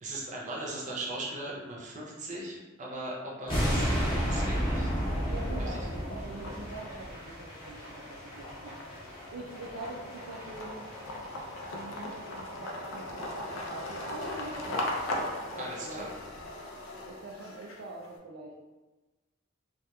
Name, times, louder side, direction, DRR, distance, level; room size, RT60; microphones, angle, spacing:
voice 1, 0.0-4.9 5.7-5.8 15.6-16.1, right 2 dB, 40° right, -3 dB, 0.5 m, -38 dB
sound 1, 3.5-12.6 12.9-13.1 13.5-13.6 13.9-14.0 14.2-14.5 14.8-14.9, equal, 25° left, 0.7 m, -33 dB
sound 2, 4.2-4.3 4.6-18.1, left 1 dB, 75° left, 0.4 m, -39 dB
voice 2, 5.3-10.9 11.7-16.1 17.1-18.7, right 2 dB, 90° right, -2 dB, 0.4 m, -44 dB
2.8 x 2.3 x 2.2 m, 1.2 s
head